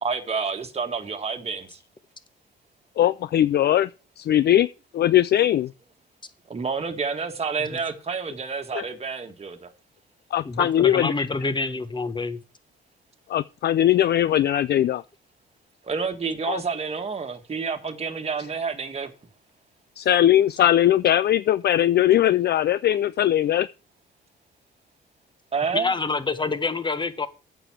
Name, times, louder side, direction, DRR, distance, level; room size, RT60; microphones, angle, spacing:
voice 1, 0.0-1.8 6.5-9.7 15.8-19.1 25.5-25.9, right 5 dB, 30° right, 1.6 m, -29 dB
voice 2, 3.0-3.9 4.2-4.7 4.9-5.7 8.7-8.8 10.3-11.3 13.3-15.0 16.5-16.6 20.0-23.7, left 12 dB, 55° left, 0.4 m, -20 dB
voice 3, 10.4-12.4 25.7-27.3, left 3 dB, 25° left, 1.4 m, -26 dB
8.9 x 6.9 x 6.0 m
cardioid pair, 90°, 20 cm